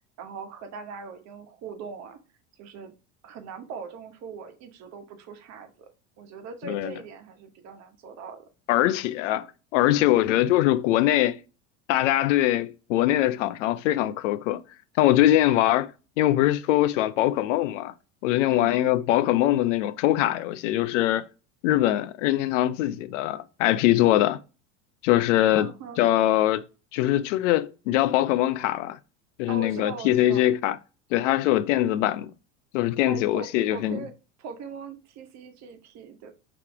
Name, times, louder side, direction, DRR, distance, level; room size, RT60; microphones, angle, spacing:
voice 1, 0.2-2.2 2.6-2.9 3.2-5.9 6.2-8.5 18.5-18.9 25.6-26.0 29.5-30.5 33.1-36.3, right 5 dB, 45° right, 1.1 m, -40 dB
voice 2, 8.7-9.5 9.7-11.4 11.9-14.6 15.0-17.9 18.2-21.3 21.6-24.4 25.0-25.7 26.0-26.6 26.9-29.0 29.4-30.8 31.1-32.3 32.7-34.0, left 14 dB, 75° left, 0.5 m, -22 dB
3.5 x 2.9 x 4.5 m
hypercardioid pair, 95°, 38 cm